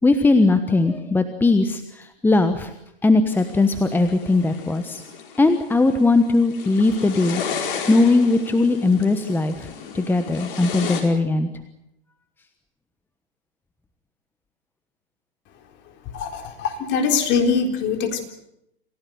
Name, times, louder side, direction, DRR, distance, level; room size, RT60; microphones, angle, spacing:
voice 1, 0.0-2.7 3.0-5.0 5.4-11.5, left 3 dB, 5° left, 9 dB, 1.2 m, -19 dB
sound 1, 3.3-11.0, left 7 dB, 55° left, 5.1 m, -34 dB
voice 2, 16.1-18.3, left 5 dB, 35° left, 5 dB, 3.9 m, -22 dB
27.5 x 16.5 x 7.9 m, 0.80 s
hypercardioid pair, 120°, 30 cm